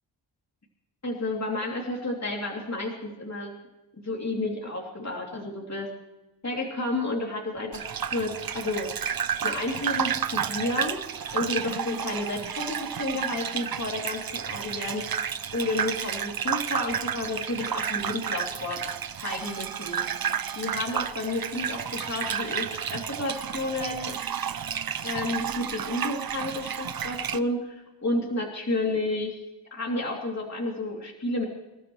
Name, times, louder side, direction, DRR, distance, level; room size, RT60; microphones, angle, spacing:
voice 1, 1.0-3.5 4.0-5.9 6.4-8.9 9.4-15.1 15.5-18.8 19.2-20.2 20.6-24.2 25.0-29.4 29.7-31.4, left 2 dB, 35° left, -1 dB, 2.9 m, -31 dB
Gurgling / Bathtub (filling or washing), 7.7-27.4, right 8 dB, 50° right, 0.7 m, -31 dB
26.5 x 12.5 x 3.1 m, 1.0 s
cardioid pair, 60°, 45 cm